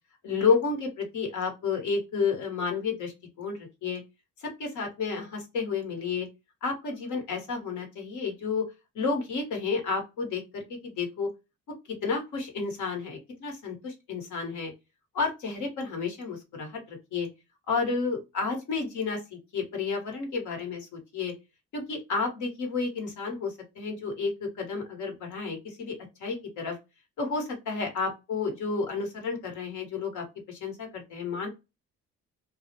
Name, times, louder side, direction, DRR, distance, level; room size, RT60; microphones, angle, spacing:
voice 1, 0.2-4.0 4.4-6.3 6.6-8.6 8.9-11.3 12.0-14.7 15.1-17.3 17.7-21.3 21.7-25.9 26.2-26.8 27.2-31.5, left 4 dB, 80° left, 2 dB, 1.1 m, -31 dB
2.3 x 2.0 x 2.8 m, 0.25 s
cardioid pair, 90°, 30 cm